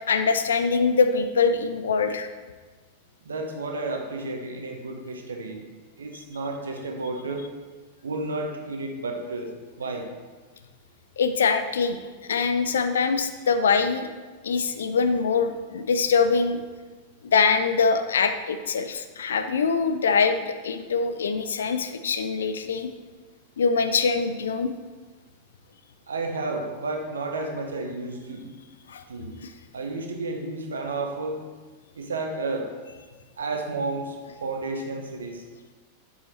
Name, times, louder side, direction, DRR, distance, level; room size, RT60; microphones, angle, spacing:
voice 1, 0.1-2.3 11.2-12.0 12.3-14.1 14.4-16.6 17.3-22.9 23.6-24.7 28.9-29.0, left 5 dB, 65° left, 8 dB, 0.5 m, -23 dB
voice 2, 3.2-5.6 6.0-7.4 8.0-10.1 26.1-28.6 29.1-29.4 29.7-31.4 31.9-32.7 33.4-35.4, right 3 dB, 70° right, 3 dB, 1.1 m, -32 dB
7.6 x 5.6 x 4.3 m, 1.3 s
figure-of-eight pair, 90°, 0 cm